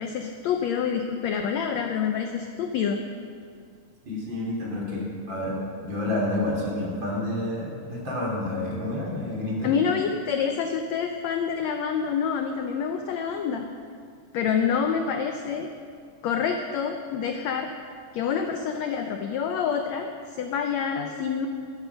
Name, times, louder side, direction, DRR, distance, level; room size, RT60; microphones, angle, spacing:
voice 1, 0.0-3.0 9.6-13.6 14.3-15.7 16.2-17.7 18.1-21.5, left 7 dB, 80° left, 5 dB, 1.6 m, -27 dB
voice 2, 4.1-9.7, left 1 dB, 35° right, -4 dB, 3.2 m, -29 dB
14.0 x 12.0 x 5.7 m, 2.2 s
omnidirectional pair, 3.9 m